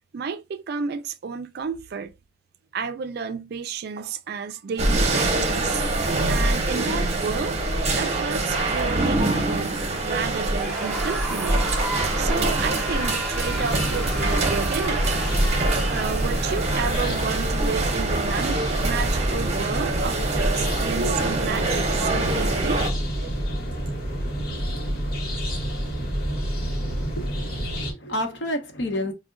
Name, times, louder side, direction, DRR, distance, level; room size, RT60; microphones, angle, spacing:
voice 1, 0.1-2.1 2.7-5.8 6.3-7.6 8.0-11.7 12.2-15.0 15.9-22.8 23.2-23.3, right 6 dB, 55° right, 0.3 m, -31 dB
sound 1, 4.8-22.9, right 2 dB, 35° right, 0.7 m, -25 dB
Screaming, 10.5-17.0, right 1 dB, 5° left, 0.6 m, -34 dB
sound 2, 13.4-27.9, equal, 50° left, 1.1 m, -28 dB
voice 2, 27.1-29.1, equal, 75° left, 0.8 m, -30 dB
4.6 x 2.1 x 2.4 m
head